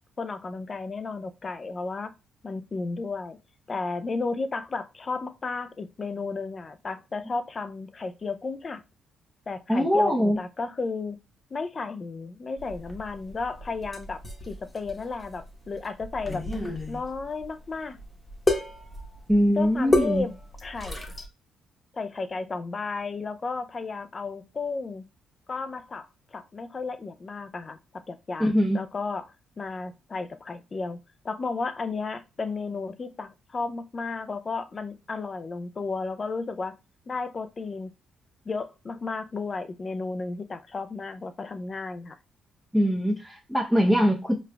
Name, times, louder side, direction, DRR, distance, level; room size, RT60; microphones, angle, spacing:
voice 1, 0.2-2.1 2.4-3.4 3.7-8.8 9.5-11.2 11.5-16.4 16.9-18.0 19.6-20.3 20.6-21.0 21.9-25.0 25.5-29.2 29.6-31.0 31.2-36.8 37.1-37.9 38.5-42.2, left 4 dB, 40° left, 10 dB, 0.4 m, -33 dB
voice 2, 9.7-10.4 19.3-20.3 28.4-28.8 42.7-44.3, equal, 5° right, -2 dB, 0.7 m, -22 dB
sound 1, 12.6-21.3, left 2 dB, 20° left, 1.0 m, -32 dB
5.0 x 2.3 x 2.2 m, 0.27 s
supercardioid pair, 70°, 0 cm